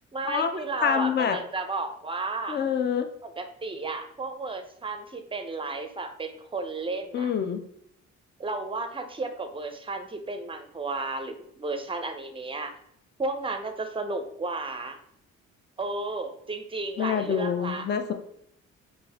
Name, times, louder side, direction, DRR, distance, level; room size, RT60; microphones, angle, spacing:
voice 1, 0.1-2.6 3.2-7.3 8.4-12.8 13.2-15.0 15.8-17.9, right 3 dB, 20° right, 7 dB, 0.6 m, -33 dB
voice 2, 0.8-1.4 2.5-3.1 7.1-7.6 17.0-18.1, left 7 dB, 35° left, 8 dB, 0.5 m, -26 dB
5.3 x 2.6 x 3.4 m, 0.73 s
cardioid pair, 90°, 30 cm